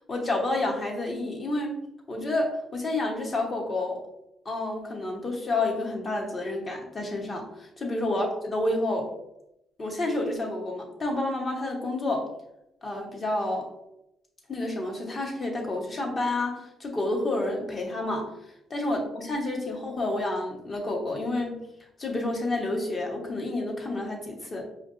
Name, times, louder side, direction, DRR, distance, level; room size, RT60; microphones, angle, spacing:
voice 1, 0.1-1.8 2.1-4.0 4.4-9.1 9.8-12.3 12.8-13.7 14.5-18.3 18.7-21.6 22.0-24.7, left 2 dB, 35° left, 1 dB, 1.1 m, -29 dB
5.4 x 2.5 x 2.6 m, 0.83 s
cardioid pair, 90°, 0 cm